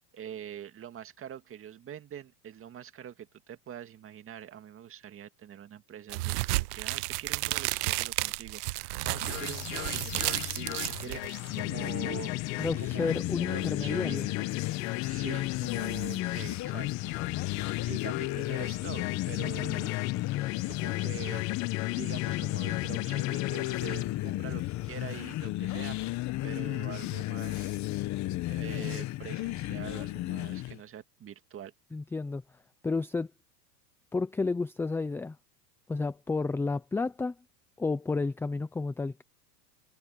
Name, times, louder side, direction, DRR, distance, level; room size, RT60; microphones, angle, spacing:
voice 1, 0.1-12.4 12.8-14.2 15.0-17.5 17.9-19.9 20.6-21.5 21.9-26.1 26.4-27.8 28.5-31.7, right 10 dB, 25° right, 2.1 m, -44 dB
sound 1, 6.1-11.6, right 21 dB, 65° right, 0.9 m, -32 dB
sound 2, 9.0-24.0, left 25 dB, 55° left, 0.6 m, -38 dB
sound 3, 11.3-30.8, left 17 dB, 35° left, 1.2 m, -33 dB
voice 2, 12.6-14.3 31.9-32.4 32.8-33.3 34.1-35.4 35.9-37.4 37.8-39.2, left 3 dB, 5° left, 0.5 m, -31 dB
supercardioid pair, 135°, 49 cm